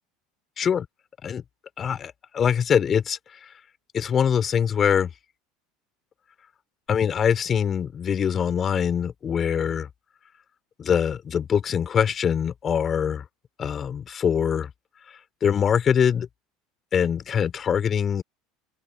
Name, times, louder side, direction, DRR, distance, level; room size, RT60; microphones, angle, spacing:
voice 1, 1.8-3.2 3.9-5.1 6.9-9.9 10.8-13.2 13.6-14.7 15.4-16.3 16.9-18.2, left 8 dB, 35° left, 4.8 m, -23 dB
open air
hypercardioid pair, 90°, 0 cm